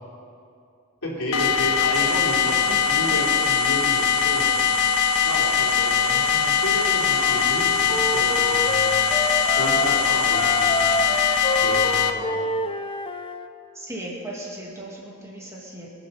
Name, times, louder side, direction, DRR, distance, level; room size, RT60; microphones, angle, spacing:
voice 1, 1.0-4.6 5.2-8.9 9.5-11.0 11.6-12.4, left 1 dB, 65° left, -5 dB, 3.4 m, -31 dB
sound 1, 1.3-12.1, left 7 dB, 90° left, 0.7 m, -21 dB
sound 2, 1.9-11.9, right 8 dB, 85° right, 1.2 m, -36 dB
Wind instrument woodwind instrument, 7.1-10.0 10.3-13.5, left 2 dB, 25° left, 0.5 m, -28 dB
voice 2, 13.7-15.9, right 1 dB, 15° right, -4 dB, 1.9 m, -37 dB
21.5 x 7.3 x 5.6 m, 2.5 s
head